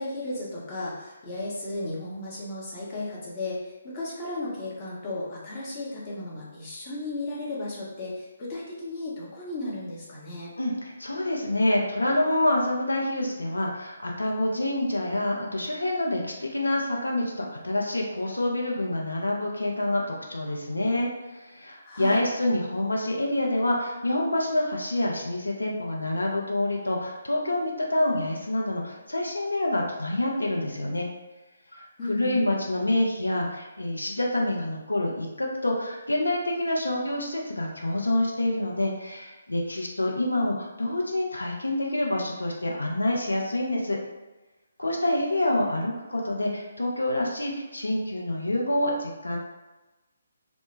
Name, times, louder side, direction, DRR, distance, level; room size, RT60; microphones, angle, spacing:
voice 1, 0.0-10.5 21.8-22.2 32.0-32.4, left 2 dB, 25° left, -6 dB, 0.7 m, -35 dB
voice 2, 10.6-31.1 31.7-44.0 44.8-49.4, left 1 dB, 75° left, -1 dB, 0.5 m, -27 dB
2.1 x 2.1 x 3.1 m, 1.1 s
figure-of-eight pair, 140°, 0 cm